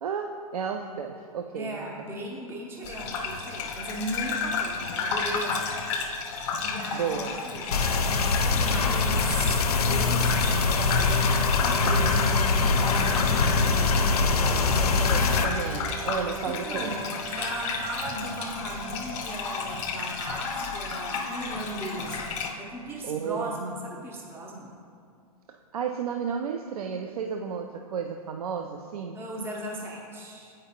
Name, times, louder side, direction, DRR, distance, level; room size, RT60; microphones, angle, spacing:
voice 1, 0.0-1.9 6.9-7.4 11.8-12.2 14.8-16.9 23.0-23.5 25.7-29.2, right 7 dB, 75° right, 4 dB, 0.4 m, -33 dB
voice 2, 1.5-7.2 7.4-9.6 9.8-15.0 16.5-17.1 17.4-24.8 29.1-30.5, right 1 dB, 10° right, -2 dB, 0.6 m, -37 dB
Gurgling / Bathtub (filling or washing), 2.8-22.5, left 5 dB, 50° left, 0.8 m, -32 dB
sound 1, 7.7-15.4, left 4 dB, 80° left, 0.4 m, -23 dB
Wind instrument woodwind instrument, 10.7-17.5, right 6 dB, 90° right, 0.9 m, -41 dB
8.0 x 4.9 x 2.8 m, 2.4 s
hypercardioid pair, 110°, 19 cm